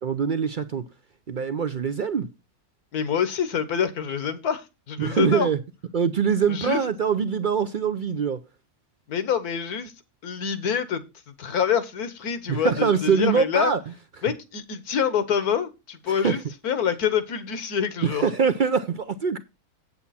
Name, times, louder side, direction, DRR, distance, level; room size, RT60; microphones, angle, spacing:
voice 1, 0.0-0.8 1.3-2.3 5.0-5.6 5.9-8.4 12.5-13.8 16.1-16.4 18.0-19.4, right 6 dB, 65° right, 0.4 m, -23 dB
voice 2, 2.9-5.5 6.5-6.8 9.1-9.9 10.2-11.0 11.4-13.7 14.2-18.2, left 7 dB, 80° left, 1.7 m, -26 dB
8.4 x 8.1 x 4.2 m
omnidirectional pair, 1.6 m